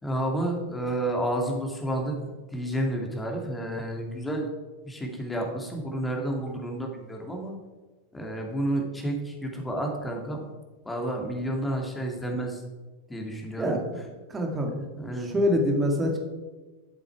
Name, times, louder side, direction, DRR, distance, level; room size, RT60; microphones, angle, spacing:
voice 1, 0.0-2.2 2.5-4.5 4.8-7.5 8.1-10.4 10.8-12.6 13.1-13.8 15.0-15.3, right 1 dB, 10° left, 1 dB, 2.3 m, -30 dB
voice 2, 13.6-14.0 14.3-14.8 15.0-16.2, equal, 15° right, 2 dB, 2.2 m, -26 dB
12.0 x 7.6 x 4.8 m, 1.2 s
figure-of-eight pair, 90°, 0 cm